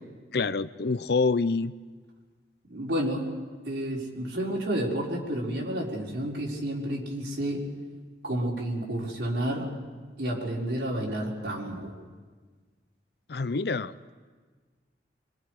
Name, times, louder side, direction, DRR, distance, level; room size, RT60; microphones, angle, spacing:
voice 1, 0.3-1.7 13.3-13.9, left 4 dB, 60° left, 15 dB, 0.6 m, -26 dB
voice 2, 2.7-3.3 3.7-7.6 8.2-9.7 10.2-11.9, right 1 dB, 75° right, -3 dB, 4.6 m, -30 dB
25.5 x 25.0 x 4.9 m, 1.5 s
head